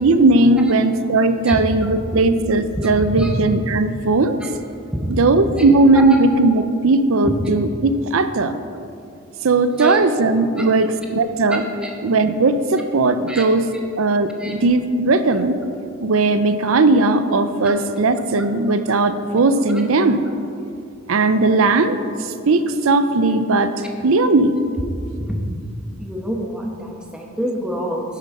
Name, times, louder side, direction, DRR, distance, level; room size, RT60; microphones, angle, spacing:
voice 1, 0.0-4.4 5.1-8.5 9.4-11.6 12.0-13.7 14.0-15.6 16.0-20.2 21.1-23.7 24.0-24.6, right 2 dB, 70° right, 11 dB, 0.6 m, -17 dB
voice 2, 26.0-28.0, equal, 5° right, -1 dB, 1.1 m, -26 dB
10.5 x 6.5 x 5.5 m, 2.4 s
head